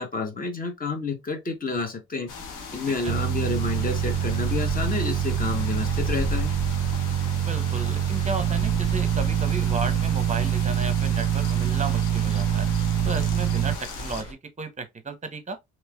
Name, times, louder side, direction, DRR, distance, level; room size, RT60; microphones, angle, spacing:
voice 1, 0.0-2.3 2.7-6.5, left 4 dB, 30° left, 1.0 m, -29 dB
sound 1, 2.3-14.2, left 5 dB, 85° left, 1.0 m, -39 dB
sound 2, 3.1-13.7, right 10 dB, 45° right, 0.5 m, -25 dB
Stream, 3.6-14.3, equal, 55° left, 1.7 m, -36 dB
voice 2, 7.4-12.7 13.0-15.6, right 4 dB, 25° right, 0.8 m, -34 dB
3.2 x 3.0 x 2.3 m
cardioid pair, 90°, 30 cm